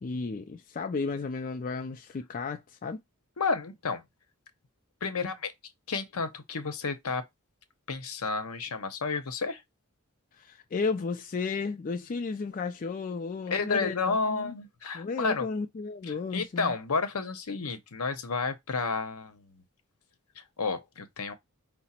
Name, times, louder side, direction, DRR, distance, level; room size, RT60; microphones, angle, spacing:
voice 1, 0.0-3.0 10.4-14.5 14.9-16.7, left 4 dB, 35° left, 0.3 m, -33 dB
voice 2, 3.4-4.0 5.0-5.5 5.9-7.2 7.9-9.6 13.5-15.5 16.0-19.6 20.4-21.3, left 4 dB, 80° left, 0.8 m, -31 dB
4.8 x 2.0 x 4.2 m
head